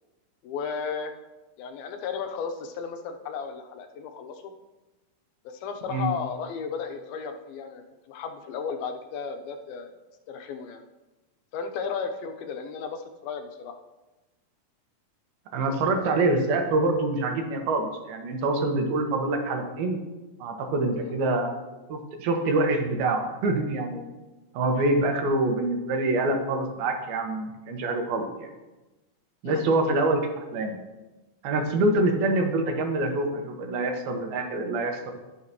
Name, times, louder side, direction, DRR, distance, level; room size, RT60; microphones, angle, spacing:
voice 1, 0.4-1.1 1.6-4.5 5.5-9.9 10.3-10.8 11.5-13.8 21.0-21.1 29.4-29.7, left 6 dB, 85° left, 5 dB, 2.6 m, -34 dB
voice 2, 15.5-20.0 20.4-21.5 21.9-24.1 24.5-28.5 29.4-30.2 30.5-30.8 31.4-35.1, right 2 dB, 85° right, 3 dB, 3.0 m, -25 dB
16.5 x 6.6 x 3.0 m, 1.1 s
omnidirectional pair, 4.3 m